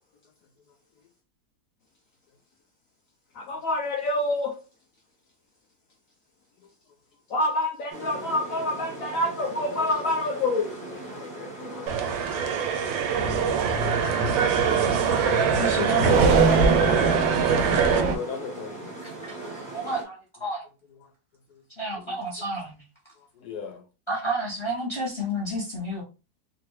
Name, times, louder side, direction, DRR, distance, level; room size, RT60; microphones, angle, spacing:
voice 1, 0.7-1.1 9.2-9.8 10.9-12.7 17.8-18.9 20.9-21.1 21.5-21.6 21.9-22.2 23.2-23.9, left 6 dB, 65° left, 1.2 m, -42 dB
voice 2, 3.3-4.5 7.3-10.7, left 1 dB, 85° left, 0.7 m, -26 dB
sound 1, 7.9-20.0, right 2 dB, 15° right, 0.6 m, -39 dB
sound 2, 11.9-18.0, right 7 dB, 85° right, 1.3 m, -24 dB
sound 3, 13.1-18.1, right 4 dB, 65° right, 0.7 m, -24 dB
voice 3, 15.5-17.2 19.0-19.4 19.7-20.7 21.8-22.8 24.1-26.0, right 1 dB, 30° left, 0.5 m, -31 dB
3.0 x 2.5 x 3.1 m
omnidirectional pair, 2.0 m